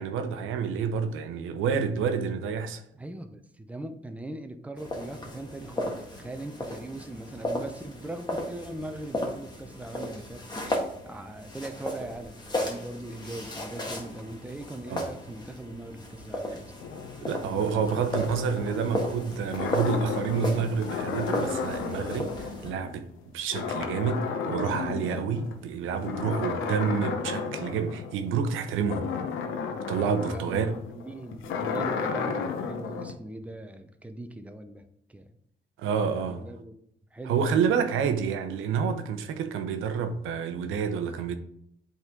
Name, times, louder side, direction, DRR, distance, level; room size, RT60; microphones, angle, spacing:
voice 1, 0.0-2.8 14.9-15.1 17.2-23.1 23.3-29.1 29.9-30.7 35.8-36.5 37.2-41.3, right 6 dB, 90° right, 0.7 m, -28 dB
voice 2, 2.9-10.4 11.1-16.7 17.6-18.0 26.5-26.7 30.3-35.3 36.1-36.7 37.1-37.7, right 1 dB, 5° right, 0.7 m, -40 dB
sound 1, 4.8-22.7, left 1 dB, 20° left, 1.6 m, -35 dB
sound 2, 16.8-23.2 23.5-25.5 26.0-33.1, left 5 dB, 85° left, 0.9 m, -33 dB
7.8 x 3.8 x 3.7 m
cardioid pair, 90°, 20 cm